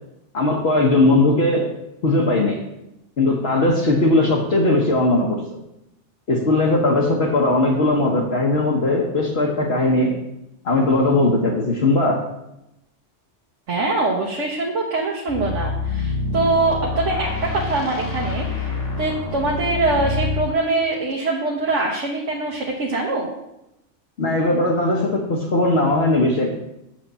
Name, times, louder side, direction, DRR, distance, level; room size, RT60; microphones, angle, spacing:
voice 1, 0.3-1.7 2.0-2.6 3.2-5.6 6.3-10.2 10.6-12.2 24.2-26.5, left 2 dB, 60° left, -1 dB, 1.4 m, -19 dB
voice 2, 13.7-18.7 19.0-23.3, right 2 dB, 90° right, -1 dB, 1.5 m, -23 dB
sound 1, 15.3-20.5, left 3 dB, 75° left, 2.2 m, -27 dB
8.9 x 4.2 x 6.8 m, 0.88 s
omnidirectional pair, 1.2 m